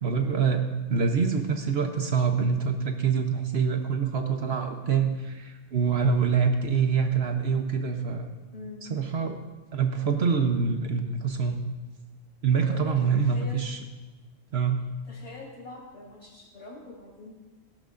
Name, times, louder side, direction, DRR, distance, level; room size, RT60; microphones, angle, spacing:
voice 1, 0.0-8.3 8.9-9.4 9.7-11.6 12.4-13.8 14.5-14.8, right 6 dB, 55° right, 5 dB, 1.0 m, -25 dB
voice 2, 8.5-8.9 12.6-13.7 15.0-17.3, left 3 dB, 60° left, -5 dB, 4.4 m, -44 dB
18.0 x 11.5 x 2.5 m, 1.2 s
omnidirectional pair, 1.3 m